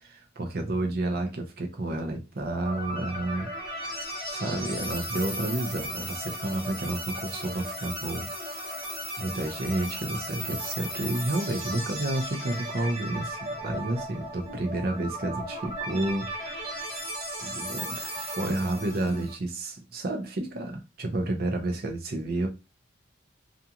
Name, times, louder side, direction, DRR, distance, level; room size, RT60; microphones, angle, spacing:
voice 1, 0.4-3.5 4.2-8.3 9.2-16.8 17.4-22.5, right 2 dB, 50° right, 0.6 m, -30 dB
sound 1, 2.5-19.3, right 1 dB, 20° right, 1.1 m, -36 dB
2.5 x 2.4 x 2.8 m
head